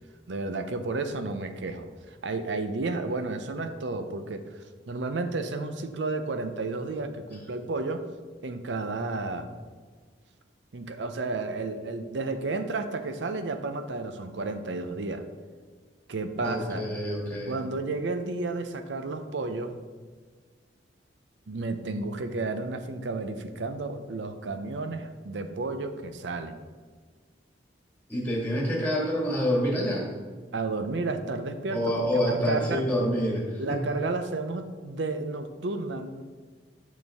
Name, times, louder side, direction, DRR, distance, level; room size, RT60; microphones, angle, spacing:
voice 1, 0.3-4.4 4.9-8.1 8.4-9.5 10.7-15.2 16.1-16.9 17.5-19.8 21.5-26.6 30.5-32.8 33.6-36.2, right 3 dB, 75° right, 9 dB, 0.6 m, -32 dB
voice 2, 16.4-17.6 28.1-30.1 31.7-33.8, equal, 10° left, -3 dB, 1.7 m, -27 dB
7.2 x 6.4 x 3.5 m, 1.5 s
head